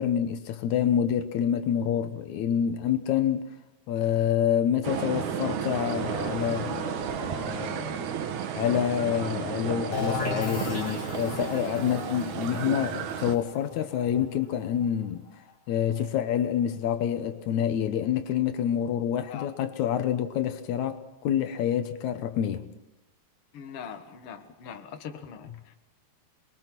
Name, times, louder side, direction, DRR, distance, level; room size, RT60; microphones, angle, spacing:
voice 1, 0.0-3.5 3.9-8.1 8.6-15.2 15.7-22.7, left 9 dB, 80° left, 2.4 m, -27 dB
sound 1, 4.8-13.4, right 8 dB, 90° right, 2.8 m, -32 dB
sound 2, 9.9-15.5, left 5 dB, 35° left, 3.8 m, -36 dB
voice 2, 23.5-25.8, left 7 dB, 55° left, 2.3 m, -42 dB
27.5 x 22.0 x 6.0 m
omnidirectional pair, 3.3 m